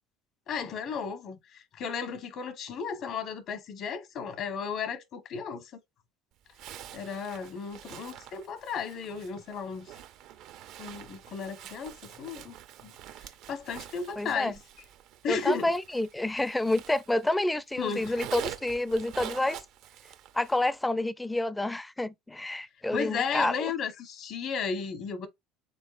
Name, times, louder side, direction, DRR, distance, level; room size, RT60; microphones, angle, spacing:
voice 1, 0.5-5.8 6.9-9.9 10.8-12.6 12.8-12.9 13.5-14.5 15.2-15.7 17.8-18.2 22.9-25.3, left 5 dB, 55° left, 1.0 m, -34 dB
Zipper (clothing), 6.5-17.4 17.7-20.7, right 11 dB, 65° right, 0.5 m, -45 dB
voice 2, 14.2-14.6 15.3-19.6 20.3-23.7, left 1 dB, 10° left, 0.4 m, -29 dB
5.2 x 3.6 x 2.5 m
supercardioid pair, 85°, 0 cm